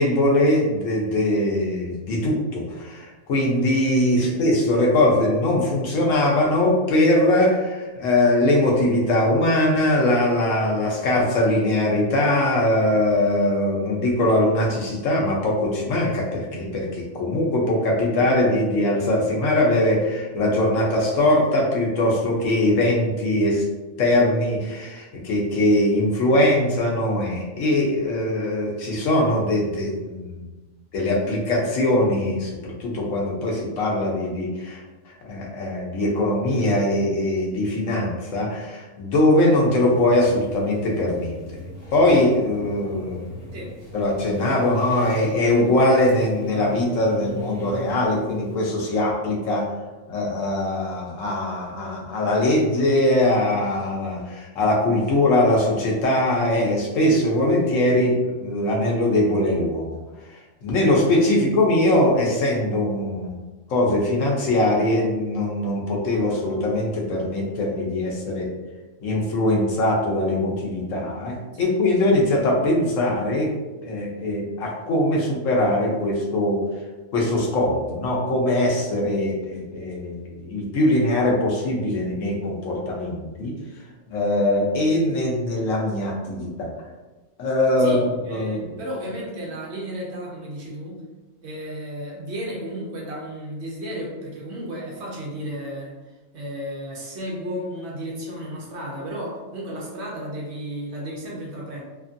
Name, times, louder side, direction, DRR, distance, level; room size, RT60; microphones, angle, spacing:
voice 1, 0.0-23.6 24.0-30.5 30.9-34.8 35.1-41.3 41.9-43.4 43.9-49.7 50.1-60.0 60.6-63.4 63.7-68.5 69.0-73.5 73.8-76.6 77.1-83.6 84.1-86.7 87.4-88.6, left 1 dB, 85° left, -2 dB, 1.1 m, -21 dB
sound 1, 39.9-48.6, equal, 65° left, 1.1 m, -37 dB
voice 2, 87.8-91.0 91.4-96.0 96.3-101.8, equal, 65° right, -3 dB, 1.0 m, -33 dB
2.9 x 2.5 x 2.5 m, 1.2 s
omnidirectional pair, 1.3 m